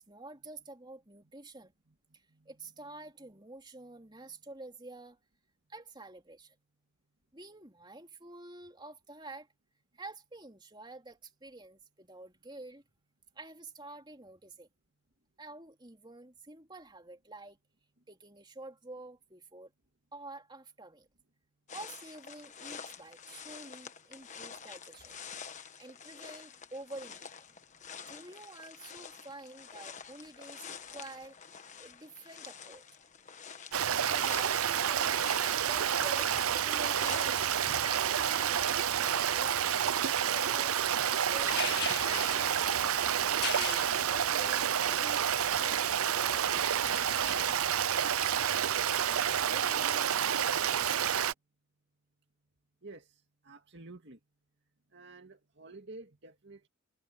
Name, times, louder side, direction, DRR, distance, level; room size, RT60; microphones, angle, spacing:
voice 1, 0.0-1.7 2.1-5.2 5.7-6.5 7.3-9.5 9.9-12.8 13.3-14.7 15.4-17.6 18.1-19.7 20.1-21.1 21.7-25.2 25.8-27.4 28.1-32.8 34.1-35.2 35.7-37.4 37.7-41.6 42.0-46.5 49.1-50.2, right 2 dB, 20° right, 3.1 m, -49 dB
sound 1, 21.7-37.5, left 7 dB, 35° left, 1.4 m, -48 dB
Stream, 33.7-51.3, right 9 dB, 80° right, 0.7 m, -29 dB
sound 2, 41.3-47.6, left 9 dB, 50° left, 1.9 m, -42 dB
voice 2, 52.8-54.2 54.9-56.7, right 2 dB, 55° right, 2.2 m, -51 dB
head